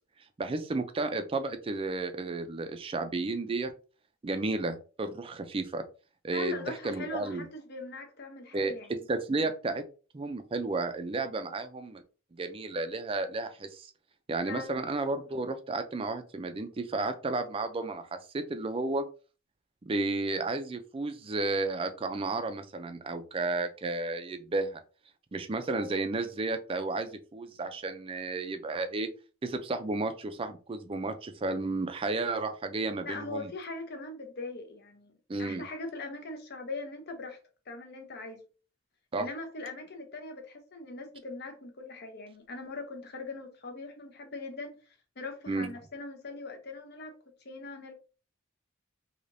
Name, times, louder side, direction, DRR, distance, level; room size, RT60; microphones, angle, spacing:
voice 1, 0.4-3.7 4.2-5.8 6.2-7.5 8.5-9.8 10.1-12.0 12.4-13.9 14.3-19.0 19.9-24.8 25.3-29.1 29.4-33.5 35.3-35.6 39.1-39.3 45.5-45.7, right 3 dB, 25° right, 0.4 m, -32 dB
voice 2, 6.3-9.0 14.5-14.8 25.7-25.9 33.0-35.1 35.4-37.4 37.7-38.4 39.2-44.8 45.2-47.2 47.4-47.9, left 3 dB, 50° left, 0.7 m, -41 dB
3.2 x 2.8 x 2.6 m
head